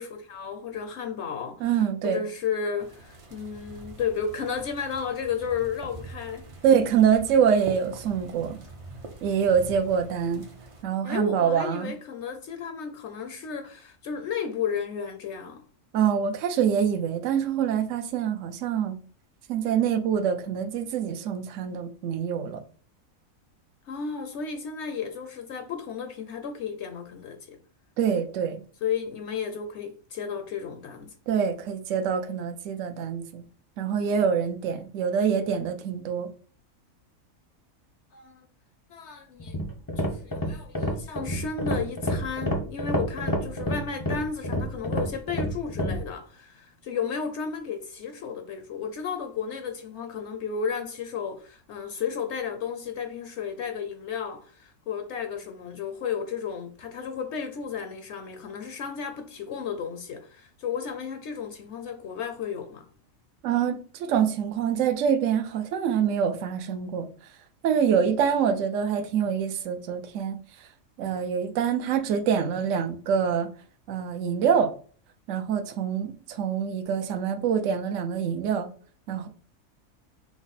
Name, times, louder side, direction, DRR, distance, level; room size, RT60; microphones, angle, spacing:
voice 1, 0.0-6.5 11.0-15.6 23.9-27.6 28.8-31.1 38.1-38.5 38.9-39.6 40.0-62.9, left 6 dB, 65° left, 0.8 m, -33 dB
voice 2, 1.6-2.2 6.6-8.6 9.2-10.4 10.8-11.9 15.9-19.0 19.5-22.6 28.0-28.6 31.3-33.4 33.8-36.3 63.4-67.1 67.6-70.4 71.0-73.5 73.9-74.7 75.3-78.7 79.1-79.3, right 7 dB, 70° right, 1.0 m, -25 dB
sound 1, 2.8-10.8, right 2 dB, 45° right, 0.4 m, -44 dB
sound 2, 39.4-46.0, equal, 25° left, 0.5 m, -28 dB
5.9 x 2.1 x 4.0 m
omnidirectional pair, 1.4 m